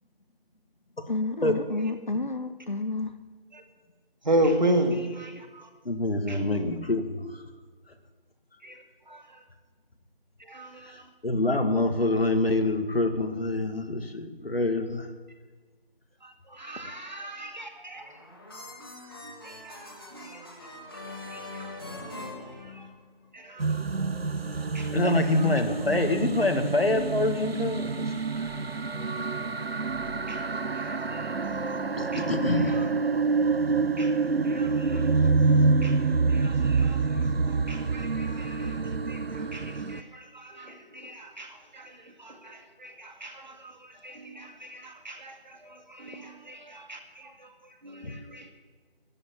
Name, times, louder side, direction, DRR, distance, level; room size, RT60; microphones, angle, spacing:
voice 1, 1.1-3.1, left 2 dB, 50° left, 10 dB, 0.9 m, -30 dB
voice 2, 4.2-5.7 6.3-6.6 8.6-9.4 10.4-11.1 16.2-18.2 18.8-18.9 19.2-20.9 21.3-22.9 23.3-23.8 24.5-25.0 25.2-25.7 29.7-30.5 30.7-32.3 32.6-32.9 34.0-34.2 34.4-48.5, right 1 dB, 50° right, 4 dB, 2.3 m, -36 dB
voice 3, 5.9-7.4 11.2-15.1 24.9-28.2 32.0-32.8 48.0-48.1, left 2 dB, 75° left, 6 dB, 2.2 m, -26 dB
sound 1, 17.9-23.3, left 2 dB, 25° left, 2.0 m, -43 dB
sound 2, 23.6-40.0, right 4 dB, 80° right, 0.9 m, -27 dB
13.5 x 11.0 x 8.9 m, 1.4 s
figure-of-eight pair, 175°, 29 cm